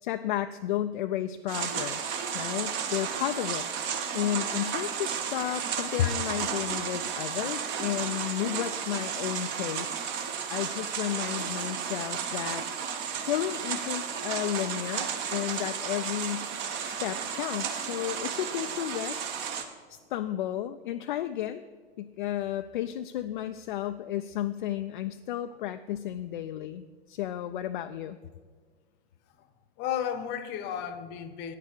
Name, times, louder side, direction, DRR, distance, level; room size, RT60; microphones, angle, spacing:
voice 1, 0.0-3.7 4.1-10.0 10.5-12.6 13.3-16.5 16.9-19.3 19.9-21.6 22.0-28.2, left 12 dB, 55° left, 8 dB, 0.4 m, -32 dB
sound 1, 1.5-19.6, right 7 dB, 35° right, 1.0 m, -33 dB
voice 2, 29.8-31.5, left 9 dB, 35° left, 11 dB, 0.8 m, -34 dB
9.6 x 6.6 x 6.6 m, 1.5 s
figure-of-eight pair, 95°, 30 cm